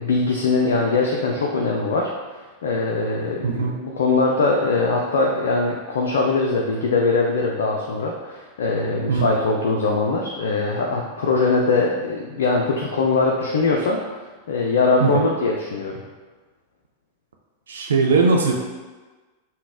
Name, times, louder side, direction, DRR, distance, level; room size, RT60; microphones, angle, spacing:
voice 1, 0.0-2.1 2.6-14.0 14.5-16.0, left 3 dB, 60° left, -1 dB, 0.4 m, -21 dB
voice 2, 3.4-3.7 9.1-9.3 15.0-15.3 17.7-18.5, right 4 dB, 65° right, 1 dB, 0.3 m, -19 dB
3.8 x 2.1 x 3.6 m, 1.3 s
figure-of-eight pair, 90°, 0 cm